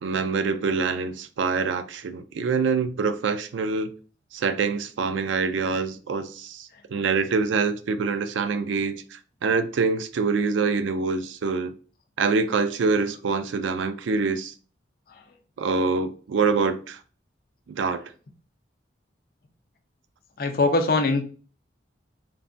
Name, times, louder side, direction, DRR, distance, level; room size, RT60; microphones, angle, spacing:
voice 1, 0.0-3.9 4.3-11.7 12.2-14.5 15.6-17.0 17.8-18.0, right 4 dB, 80° right, 0.4 m, -25 dB
voice 2, 20.4-21.2, left 3 dB, 50° left, 0.4 m, -22 dB
3.2 x 2.2 x 2.5 m
head